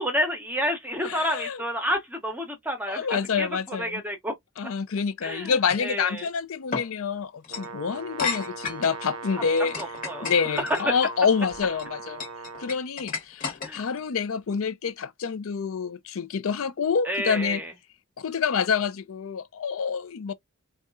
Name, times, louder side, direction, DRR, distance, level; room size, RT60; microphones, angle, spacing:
voice 1, 0.0-3.1 3.4-4.3 5.2-6.3 9.8-10.3 10.5-11.0 13.6-13.9 17.0-17.7, equal, 10° right, 0.8 m, -29 dB
voice 2, 1.1-1.6 2.9-4.0 4.6-9.7 10.2-12.2 12.6-17.6 18.2-20.3, left 6 dB, 70° left, 0.5 m, -27 dB
sound 1, 5.7-5.9 6.7-6.9 7.4-7.7 8.2-8.9 9.5-10.8 11.5-11.8 12.2-14.0, left 5 dB, 40° left, 1.1 m, -32 dB
Brass instrument, 7.5-12.7, right 4 dB, 70° right, 0.5 m, -40 dB
4.1 x 2.3 x 2.4 m
head